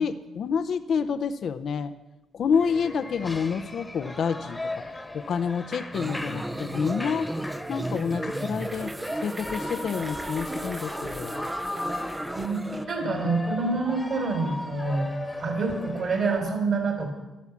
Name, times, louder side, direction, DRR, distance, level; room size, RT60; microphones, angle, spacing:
voice 1, 0.0-1.9 2.3-4.6 5.1-7.3 7.7-8.9 9.2-11.4 13.0-13.2, left 6 dB, 60° left, 10 dB, 0.7 m, -28 dB
Shout / Cheering, 2.5-16.4, left 2 dB, 15° left, 1.3 m, -38 dB
sound 1, 5.9-12.9, right 1 dB, 15° right, 0.6 m, -34 dB
voice 2, 12.3-15.1 15.4-17.1, right 3 dB, 50° right, 3 dB, 3.8 m, -27 dB
13.0 x 12.5 x 7.2 m, 1.0 s
cardioid pair, 90°, 0 cm